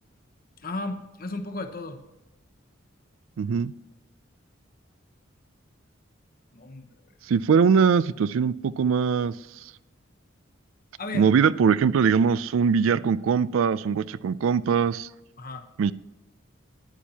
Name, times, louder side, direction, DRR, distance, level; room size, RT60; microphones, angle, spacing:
voice 1, 0.6-2.0 6.5-6.9 11.0-11.3 15.4-15.6, left 2 dB, 45° left, 7 dB, 0.9 m, -34 dB
voice 2, 3.4-3.7 7.3-9.3 11.1-15.1 15.8-15.9, right 6 dB, 80° right, 18 dB, 0.3 m, -21 dB
13.0 x 10.0 x 2.8 m, 1.1 s
head